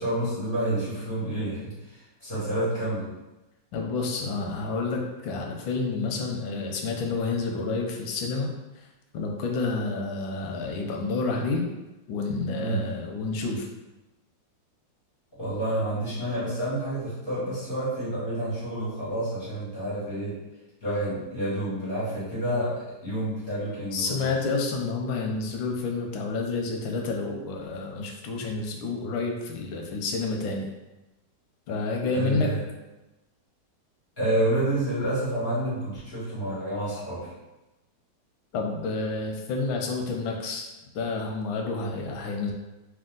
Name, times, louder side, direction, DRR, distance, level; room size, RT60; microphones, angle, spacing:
voice 1, 0.0-1.7 2.2-3.1 12.6-12.8 15.4-20.4 20.8-24.3 32.1-32.6 34.2-37.3, right 1 dB, 30° left, -11 dB, 1.7 m, -29 dB
voice 2, 3.7-8.5 9.1-11.6 12.1-13.7 23.9-30.7 31.7-32.5 38.5-40.7 40.9-42.5, left 3 dB, 90° left, 1 dB, 1.4 m, -29 dB
3.4 x 2.7 x 3.8 m, 1.0 s
omnidirectional pair, 2.1 m